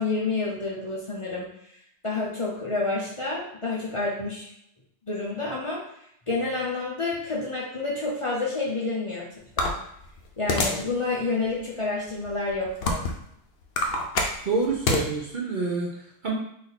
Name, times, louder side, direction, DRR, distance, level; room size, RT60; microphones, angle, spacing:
voice 1, 0.0-1.5 2.0-4.5 5.1-5.8 6.3-9.3 9.6-9.8 10.4-13.0, left 3 dB, 35° left, -5 dB, 0.6 m, -29 dB
sound 1, 9.6-10.9 11.4-11.6 12.3-13.3 13.6-15.0, left 2 dB, 60° left, 0.8 m, -26 dB
voice 2, 14.4-16.3, right 3 dB, 50° right, -2 dB, 0.7 m, -27 dB
3.3 x 2.7 x 3.9 m, 0.73 s
omnidirectional pair, 1.2 m